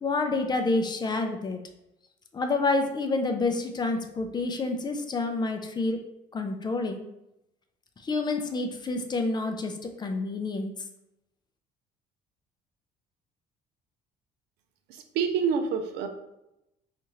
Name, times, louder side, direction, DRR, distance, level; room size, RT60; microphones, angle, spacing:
voice 1, 0.0-1.6 2.3-6.0 6.3-7.0 8.0-10.7, left 3 dB, 25° left, 5 dB, 0.4 m, -28 dB
voice 2, 14.9-16.1, right 6 dB, 85° right, 6 dB, 0.4 m, -27 dB
3.0 x 2.4 x 2.8 m, 0.88 s
cardioid pair, 110°, 17 cm